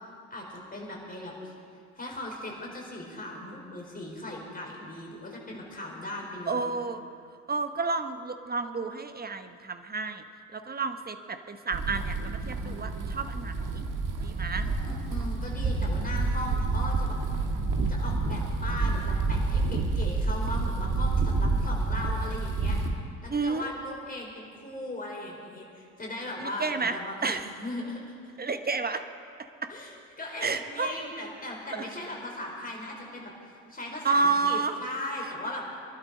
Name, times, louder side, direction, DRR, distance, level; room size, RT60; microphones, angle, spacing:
voice 1, 0.3-1.5 1.9-6.7 14.6-17.2 17.9-22.8 23.2-28.0 29.7-29.9 30.2-35.6, left 1 dB, 20° left, -2 dB, 5.1 m, -38 dB
voice 2, 6.5-7.0 7.5-10.3 10.5-13.9 14.2-14.7 23.3-23.7 26.4-27.0 27.2-27.5 28.4-29.0 29.6-29.7 30.4-30.9 31.7-31.8 34.0-34.8 35.2-35.3, right 4 dB, 20° right, 8 dB, 1.0 m, -30 dB
sound 1, 11.7-22.9, right 3 dB, 45° right, 1.9 m, -28 dB
23.0 x 12.0 x 5.2 m, 2.4 s
figure-of-eight pair, 55°, 43 cm